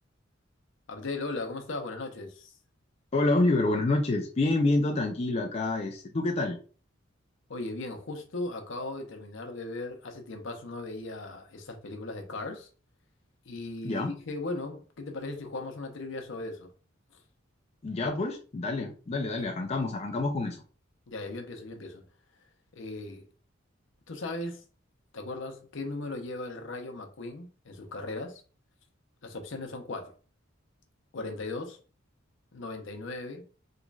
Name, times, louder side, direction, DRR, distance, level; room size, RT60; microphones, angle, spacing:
voice 1, 0.9-2.5 7.5-12.7 13.5-16.7 19.4-19.5 21.1-22.0 22.7-23.2 24.1-24.6 25.1-28.4 29.2-30.1 31.1-31.8 32.5-33.4, left 2 dB, 65° left, 0.7 m, -37 dB
voice 2, 3.1-6.6 13.8-14.1 17.8-20.6, left 2 dB, 30° left, 0.4 m, -27 dB
3.7 x 3.0 x 2.3 m
head